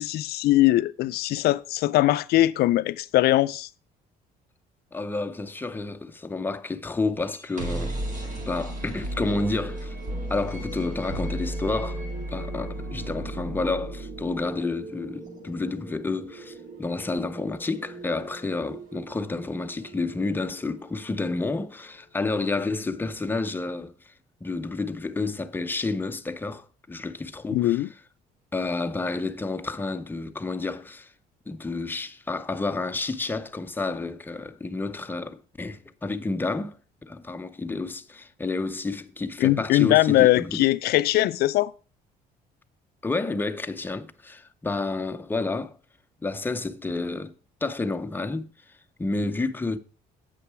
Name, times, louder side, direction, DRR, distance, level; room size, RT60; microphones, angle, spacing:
voice 1, 0.0-3.7 27.5-27.9 39.4-41.7, left 16 dB, 70° left, 0.4 m, -21 dB
voice 2, 4.9-8.0 8.5-10.0 10.3-12.0 12.3-24.1 24.4-27.8 28.5-31.1 31.5-36.8 37.0-40.7 43.0-45.8 46.2-47.3 47.6-48.5 49.0-49.8, left 3 dB, 10° left, 0.6 m, -30 dB
sound 1, 7.3-21.1, right 1 dB, 50° right, 2.0 m, -36 dB
8.3 x 5.9 x 4.7 m
cardioid pair, 110°, 17 cm